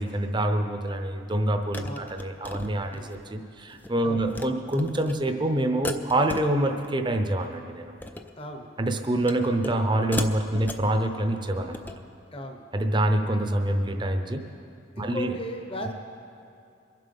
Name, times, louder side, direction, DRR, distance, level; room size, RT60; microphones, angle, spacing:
voice 1, 0.0-7.9 8.8-11.9 12.7-14.4 15.0-15.3, right 1 dB, 25° right, 6 dB, 0.7 m, -26 dB
sound 1, 0.9-1.0 1.7-3.2 3.6-3.9 4.2-4.5 4.7-5.1 5.8-6.9 7.1-7.5 7.9-8.3 9.3-9.8 10.1-10.9 11.6-12.0, left 2 dB, 10° left, 0.4 m, -36 dB
voice 2, 8.4-8.7 12.3-12.6 15.0-15.9, equal, 30° left, 4 dB, 0.9 m, -36 dB
22.5 x 7.7 x 5.4 m, 2.5 s
head